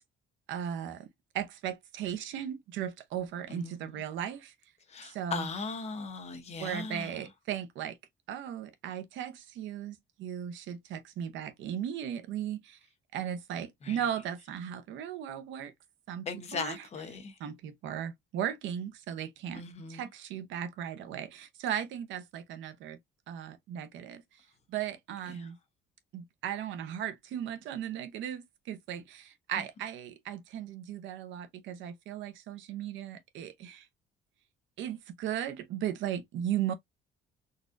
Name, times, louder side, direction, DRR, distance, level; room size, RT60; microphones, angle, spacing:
voice 1, 0.5-1.1 1.3-4.5 5.0-5.5 6.6-8.0 8.3-12.8 13.1-15.7 16.1-16.9 17.4-19.6 19.9-23.0 23.3-24.2 24.7-25.6 26.1-33.9 34.8-36.7, right 9 dB, 85° right, 0.7 m, -37 dB
voice 2, 3.5-4.0 4.9-7.2 13.8-14.0 16.3-17.3 19.5-20.0, left 4 dB, 35° left, 0.8 m, -38 dB
4.0 x 2.4 x 2.5 m
cardioid pair, 170°, 19 cm